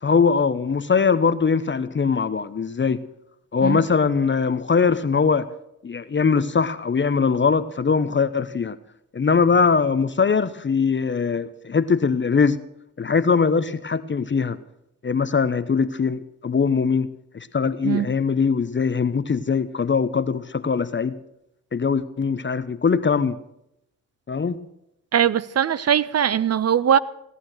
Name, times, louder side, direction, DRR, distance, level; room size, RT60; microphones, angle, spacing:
voice 1, 0.0-3.0 3.5-5.5 5.8-8.8 9.1-12.6 13.0-14.6 15.0-21.2 21.7-23.4 24.3-24.6, left 5 dB, 30° left, 0.9 m, -21 dB
voice 2, 25.1-27.0, right 9 dB, 40° right, 0.9 m, -20 dB
17.0 x 11.5 x 6.4 m
hypercardioid pair, 45°, 37 cm